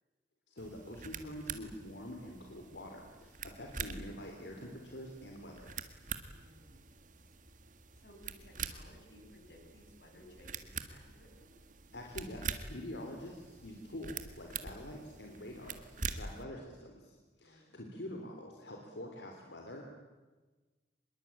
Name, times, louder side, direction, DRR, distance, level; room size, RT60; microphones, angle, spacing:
voice 1, 0.5-5.7 11.9-19.9, left 1 dB, 85° left, 1 dB, 3.4 m, -46 dB
sound 1, 0.6-16.4, right 5 dB, 50° right, 1.8 m, -45 dB
voice 2, 6.3-7.5 8.0-11.5 15.2-15.5 16.2-16.5 17.4-17.8, equal, 65° left, 3 dB, 6.3 m, -59 dB
25.0 x 22.0 x 8.9 m, 1.3 s
head